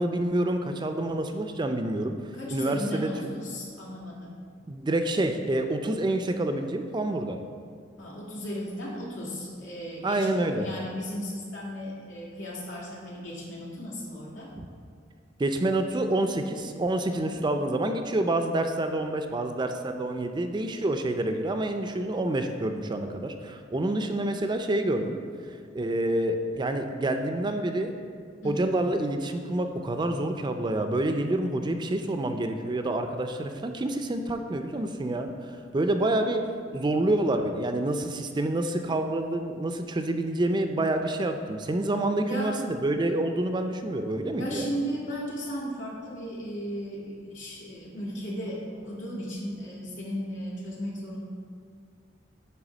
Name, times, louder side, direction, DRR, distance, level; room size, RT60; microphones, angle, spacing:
voice 1, 0.0-2.1 2.5-3.3 4.7-7.4 10.0-10.7 15.4-25.2 25.7-27.9 28.4-35.3 35.7-36.4 36.7-44.7, right 1 dB, 25° right, 6 dB, 0.4 m, -27 dB
voice 2, 2.3-4.3 8.0-14.5 17.1-17.2 17.6-17.7 28.4-28.6 42.3-42.6 44.4-51.2, equal, 85° left, -5 dB, 2.0 m, -35 dB
9.0 x 3.5 x 6.1 m, 2.1 s
head